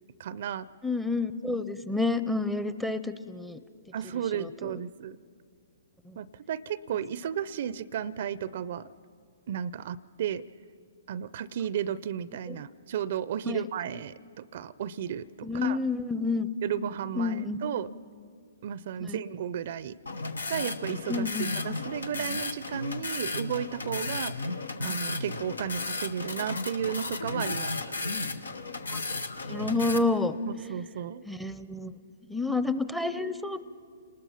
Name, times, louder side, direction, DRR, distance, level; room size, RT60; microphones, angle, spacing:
voice 1, 0.2-0.7 3.9-5.2 6.2-8.9 9.5-10.4 11.1-15.8 16.6-17.9 18.6-20.0 20.5-21.3 21.6-24.3 24.8-28.0 30.7-31.2, right 9 dB, 55° right, 18 dB, 0.5 m, -33 dB
voice 2, 0.8-3.6 4.3-4.8 6.1-6.2 12.5-12.6 13.4-13.7 15.4-16.5 17.2-17.6 19.1-19.2 21.1-21.5 28.9-29.0 29.5-30.4 31.3-31.9 32.3-33.6, left 3 dB, ahead, 14 dB, 0.7 m, -29 dB
sound 1, 20.1-30.0, left 3 dB, 85° left, 1.0 m, -34 dB
29.5 x 20.0 x 5.7 m, 2.2 s
hypercardioid pair, 130°, 0 cm